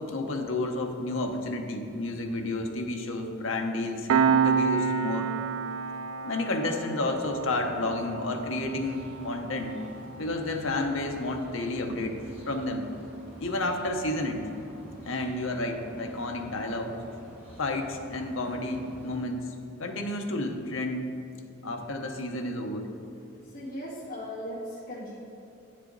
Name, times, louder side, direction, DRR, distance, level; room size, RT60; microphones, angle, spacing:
voice 1, 0.0-5.3 6.2-9.8 10.2-12.2 12.5-12.9 13.4-14.4 15.0-17.0 17.6-19.4 19.8-21.1 21.6-22.9, left 2 dB, 75° left, 4 dB, 0.8 m, -31 dB
Piano, 4.1-15.2, right 6 dB, 90° right, 0.4 m, -31 dB
sound 1, 7.0-19.1, equal, 10° right, 1.9 m, -49 dB
voice 2, 23.3-25.2, equal, 45° left, -8 dB, 1.9 m, -38 dB
9.1 x 6.6 x 3.9 m, 2.8 s
head